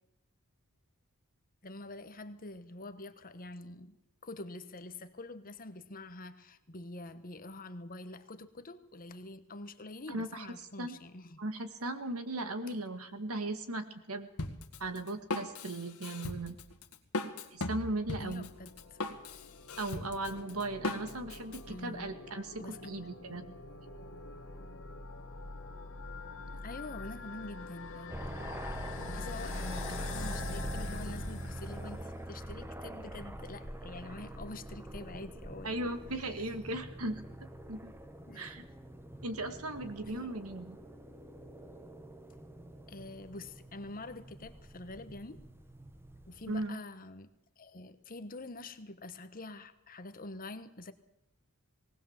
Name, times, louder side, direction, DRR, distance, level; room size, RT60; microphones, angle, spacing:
voice 1, 1.6-4.0 4.2-11.4 18.2-19.0 21.7-22.1 22.6-22.9 26.6-28.2 29.1-35.7 38.3-38.5 40.1-40.3 42.9-45.4 46.3-47.3 47.6-50.9, left 2 dB, 40° left, 10 dB, 1.2 m, -46 dB
voice 2, 10.1-10.5 10.8-11.0 11.4-14.3 14.8-16.6 17.5-18.5 19.8-23.5 35.6-37.2 37.7-37.9 38.3-38.6 39.2-40.8 46.5-46.8, right 2 dB, 70° right, 9 dB, 1.9 m, -37 dB
Drum kit, 14.4-21.6, left 2 dB, 75° left, 1.8 m, -39 dB
sound 1, 18.3-32.3, left 2 dB, 60° left, 1.9 m, -44 dB
sound 2, 28.1-46.7, right 1 dB, 10° right, 1.0 m, -45 dB
19.0 x 19.0 x 7.3 m, 0.84 s
head